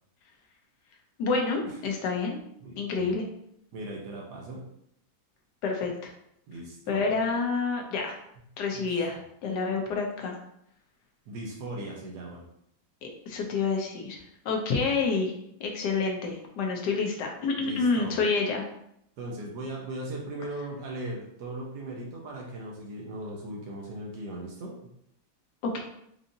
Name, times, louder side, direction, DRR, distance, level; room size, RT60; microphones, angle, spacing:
voice 1, 1.2-2.4 2.7-3.2 5.6-6.1 6.9-8.2 8.6-10.4 13.0-14.2 14.4-15.3 15.6-18.6 25.6-25.8, left 4 dB, 80° left, 1 dB, 1.3 m, -28 dB
voice 2, 2.6-3.2 3.7-4.6 6.5-7.0 8.7-9.0 11.3-12.5 17.6-18.2 19.2-24.7, right 1 dB, 80° right, -2 dB, 1.4 m, -38 dB
4.7 x 2.7 x 2.6 m, 0.74 s
omnidirectional pair, 1.8 m